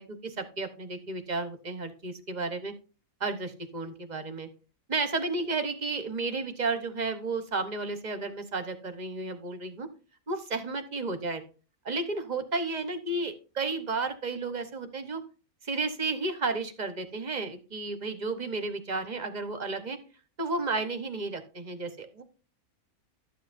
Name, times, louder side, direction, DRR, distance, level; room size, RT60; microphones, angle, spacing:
voice 1, 0.0-2.7 3.2-4.5 4.9-9.9 10.3-11.4 11.8-15.2 15.6-20.0 20.4-22.2, right 3 dB, 35° right, 8 dB, 1.0 m, -32 dB
13.0 x 7.5 x 2.6 m, 0.35 s
omnidirectional pair, 1.6 m